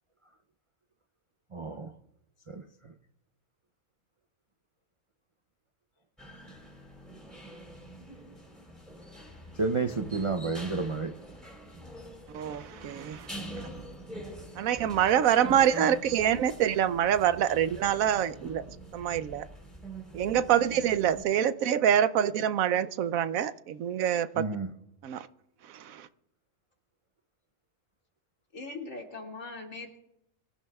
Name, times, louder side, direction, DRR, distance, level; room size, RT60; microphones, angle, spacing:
voice 1, 1.5-1.9 2.5-2.6 9.6-11.1 24.4-24.7, right 4 dB, 40° right, 0.4 m, -30 dB
sound 1, 6.2-21.2, right 1 dB, ahead, 3.7 m, -45 dB
voice 2, 12.3-13.3 14.6-18.6 18.9-19.5 20.1-24.4 25.0-25.3 25.7-26.1, right 10 dB, 80° right, 1.1 m, -26 dB
voice 3, 28.5-30.0, left 3 dB, 70° left, 2.8 m, -40 dB
24.5 x 14.5 x 2.3 m
omnidirectional pair, 1.4 m